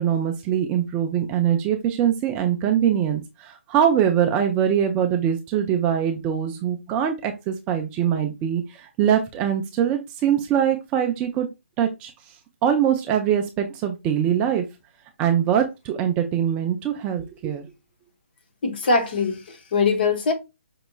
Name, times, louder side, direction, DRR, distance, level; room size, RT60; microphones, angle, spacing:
voice 1, 0.0-11.5 11.8-12.1 12.6-14.6 15.2-17.7, right 9 dB, 15° right, 0.4 m, -23 dB
voice 2, 18.6-20.3, left 4 dB, 45° left, 1.1 m, -22 dB
5.3 x 2.9 x 2.3 m
figure-of-eight pair, 145°, 7 cm